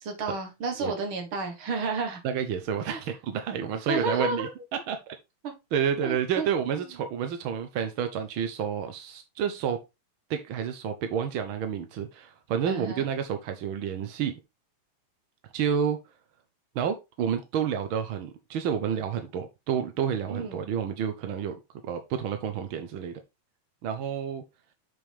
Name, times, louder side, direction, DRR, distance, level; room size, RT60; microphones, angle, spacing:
voice 1, 0.0-2.2 2.9-3.0 3.9-4.5 5.4-5.5 6.0-6.5 12.7-13.1 20.3-20.6, right 3 dB, 50° right, 2.0 m, -31 dB
voice 2, 2.2-4.5 4.9-5.1 5.7-9.8 10.3-14.3 15.5-16.0 16.7-21.5 21.8-23.2 23.8-24.4, right 8 dB, 75° right, 1.1 m, -29 dB
7.4 x 5.3 x 3.4 m
omnidirectional pair, 3.6 m